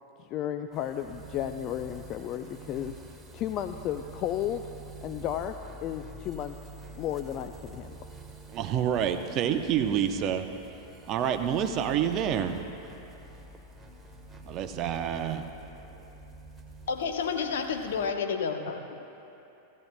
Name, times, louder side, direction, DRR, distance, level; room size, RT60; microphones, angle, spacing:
voice 1, 0.2-2.9 3.3-4.7 5.0-5.6 5.8-6.6 7.0-8.0, left 11 dB, 40° left, 8 dB, 0.4 m, -33 dB
sound 1, 0.7-18.1, right 2 dB, 15° right, 1.3 m, -47 dB
voice 2, 8.5-10.5 11.1-12.6 14.4-15.4, right 9 dB, 40° right, 8 dB, 0.7 m, -28 dB
voice 3, 16.9-19.0, left 5 dB, 65° left, 4 dB, 0.9 m, -30 dB
16.0 x 15.0 x 2.2 m, 2.9 s
figure-of-eight pair, 95°, 0 cm